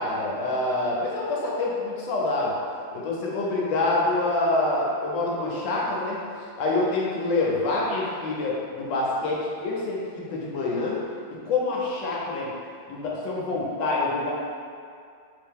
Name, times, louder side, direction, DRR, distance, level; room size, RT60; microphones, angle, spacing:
voice 1, 0.0-2.5 2.9-6.2 6.6-11.0 11.3-12.5 12.9-14.3, left 2 dB, 70° left, -4 dB, 1.2 m, -26 dB
3.4 x 2.7 x 3.5 m, 2.3 s
omnidirectional pair, 2.2 m